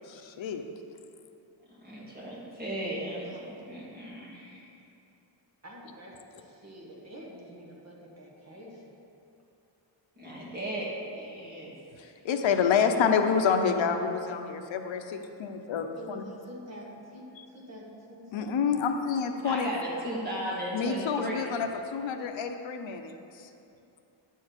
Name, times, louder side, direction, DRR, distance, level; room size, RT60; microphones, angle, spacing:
voice 1, 0.1-0.6 12.0-16.2 18.3-19.7 20.7-23.1, left 6 dB, 80° left, 6 dB, 0.8 m, -28 dB
voice 2, 1.7-4.7 10.2-11.7 19.4-21.6 22.2-22.3, equal, 20° right, -7 dB, 2.3 m, -36 dB
voice 3, 5.6-9.0 16.0-18.6, equal, 35° right, -2 dB, 1.3 m, -47 dB
10.5 x 4.6 x 7.9 m, 2.8 s
wide cardioid pair, 170°, 45 cm